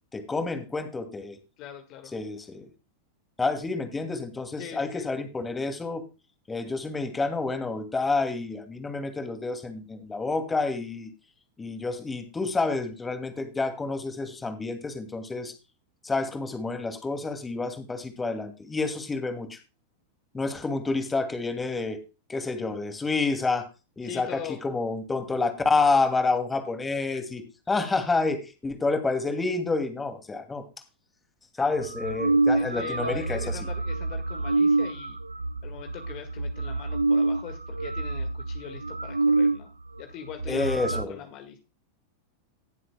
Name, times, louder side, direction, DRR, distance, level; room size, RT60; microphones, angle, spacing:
voice 1, 0.1-1.4 2.1-2.7 3.4-6.0 6.5-11.1 11.6-15.5 16.0-19.6 20.3-22.0 22.3-23.7 24.0-30.6 31.6-33.6 40.5-41.2, left 3 dB, 15° left, 7 dB, 2.4 m, -29 dB
voice 2, 1.6-2.1 4.6-5.1 24.0-24.6 32.5-35.2 35.6-39.7 40.0-41.6, left 10 dB, 45° left, 6 dB, 1.7 m, -41 dB
sound 1, 31.8-39.6 40.0-40.1 40.3-41.0, right 2 dB, 90° right, 0.4 m, -27 dB
19.5 x 7.6 x 2.2 m, 0.29 s
figure-of-eight pair, 90°, 0 cm